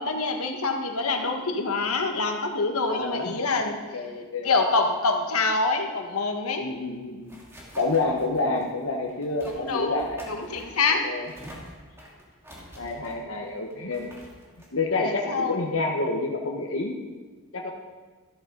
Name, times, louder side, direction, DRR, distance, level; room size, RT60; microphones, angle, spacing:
voice 1, 0.0-3.8 4.4-6.7 9.4-10.0 10.3-11.0 15.0-15.6, left 3 dB, 80° left, 4 dB, 1.5 m, -26 dB
voice 2, 2.9-3.4 3.9-4.5 6.6-7.4 7.8-10.2 11.0-11.3 12.7-14.1 14.7-17.0 17.5-17.7, left 3 dB, 65° left, 0 dB, 1.2 m, -28 dB
sound 1, 6.7-15.9, equal, 10° right, 2.4 m, -48 dB
13.0 x 13.0 x 3.9 m, 1.4 s
head